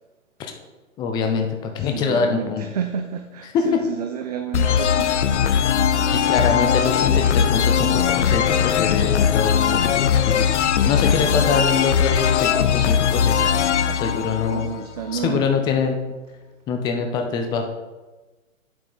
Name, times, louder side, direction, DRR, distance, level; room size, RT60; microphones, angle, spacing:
voice 1, 1.0-2.7 3.5-3.6 6.1-10.5 10.9-13.5 14.0-14.7 15.1-16.0 16.7-17.6, left 5 dB, 10° left, 4 dB, 0.6 m, -24 dB
voice 2, 1.7-5.6 11.1-11.5 13.7-14.0 14.5-15.5, right 8 dB, 30° right, 7 dB, 0.5 m, -31 dB
sound 1, 4.5-15.1, left 8 dB, 60° left, 0.7 m, -20 dB
8.2 x 7.8 x 5.3 m, 1.2 s
hypercardioid pair, 135°, 40 cm